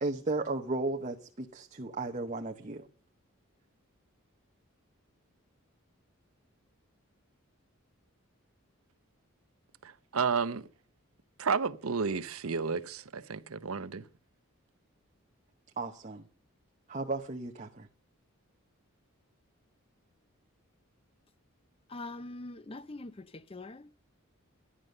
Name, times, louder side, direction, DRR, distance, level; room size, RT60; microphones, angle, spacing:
voice 1, 0.0-2.9 15.8-16.2 16.9-17.9, right 2 dB, 35° right, 0.8 m, -35 dB
voice 2, 10.1-10.7 11.4-14.0, right 5 dB, 80° right, 0.7 m, -31 dB
voice 3, 21.9-24.1, left 2 dB, 25° left, 0.5 m, -44 dB
12.0 x 11.0 x 6.5 m
head